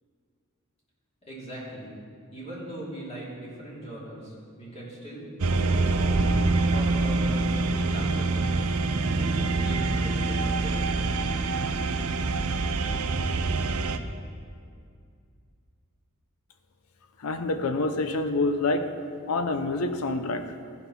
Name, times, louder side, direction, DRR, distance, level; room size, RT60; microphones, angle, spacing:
voice 1, 1.3-1.9 2.3-6.3 6.7-8.5 9.1-11.1, right 1 dB, 30° left, -6 dB, 3.0 m, -40 dB
sound 1, 5.4-14.0, right 3 dB, 85° right, 0.6 m, -25 dB
voice 2, 17.2-18.9 19.3-20.5, left 2 dB, 85° left, 8 dB, 0.6 m, -27 dB
14.5 x 5.8 x 5.8 m, 2.3 s
head